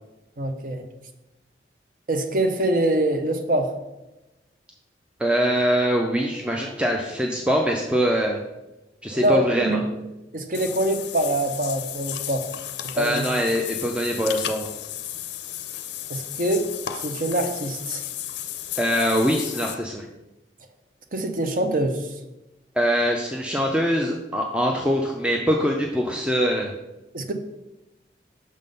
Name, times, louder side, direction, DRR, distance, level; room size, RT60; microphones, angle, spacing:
voice 1, 0.4-0.8 2.1-3.7 9.1-9.8 10.3-12.4 12.9-13.3 16.1-16.7 16.9-18.0 21.1-22.1 27.1-27.3, right 1 dB, 50° right, 6 dB, 0.7 m, -24 dB
voice 2, 5.2-8.4 9.0-9.8 13.0-14.7 18.8-20.1 22.8-26.7, equal, 5° right, 1 dB, 0.4 m, -23 dB
Water / Bathtub (filling or washing), 10.5-19.7, left 11 dB, 75° left, 0.5 m, -34 dB
6.5 x 3.6 x 5.3 m, 0.98 s
head